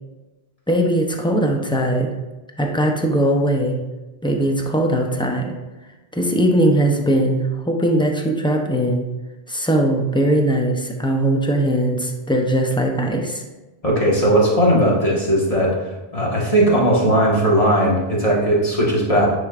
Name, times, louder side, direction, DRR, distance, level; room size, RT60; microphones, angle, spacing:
voice 1, 0.7-2.1 2.6-3.8 4.2-5.5 6.1-9.0 9.5-13.4, right 1 dB, 5° left, 2 dB, 0.5 m, -20 dB
voice 2, 13.8-15.7 16.1-19.3, right 1 dB, 35° left, -4 dB, 1.6 m, -17 dB
9.8 x 4.5 x 2.5 m, 1.1 s
omnidirectional pair, 1.1 m